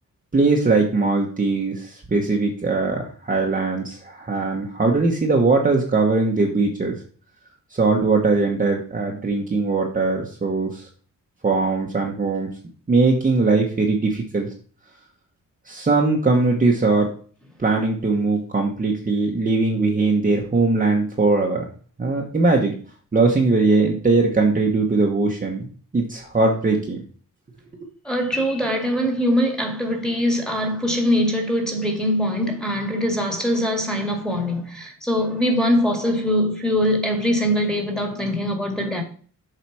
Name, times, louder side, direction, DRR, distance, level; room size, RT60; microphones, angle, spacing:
voice 1, 0.3-6.9 7.7-10.9 11.4-12.5 12.9-14.5 15.7-17.1 17.6-21.6 22.0-22.7 23.1-25.7 25.9-27.0, right 3 dB, 25° right, 1.1 m, -20 dB
voice 2, 28.0-39.0, equal, ahead, 1.9 m, -22 dB
7.3 x 5.0 x 4.7 m
wide cardioid pair, 150°, 34 cm